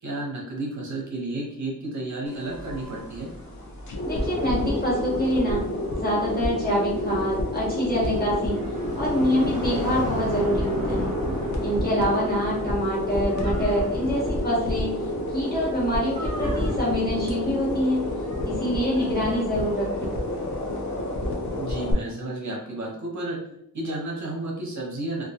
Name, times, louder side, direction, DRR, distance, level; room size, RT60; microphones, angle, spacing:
voice 1, 0.0-3.3 21.6-23.4 23.7-25.2, right 2 dB, 55° right, -2 dB, 0.6 m, -32 dB
sound 1, 2.3-21.9, left 1 dB, 55° left, 0.5 m, -29 dB
sound 2, 2.4-21.1, right 1 dB, 25° right, 0.9 m, -38 dB
voice 2, 4.0-5.6 5.9-8.6 8.9-11.1 11.6-14.9 15.3-18.0 18.4-20.1, equal, 30° left, -8 dB, 1.0 m, -25 dB
2.1 x 2.1 x 2.7 m, 0.74 s
wide cardioid pair, 170°, 34 cm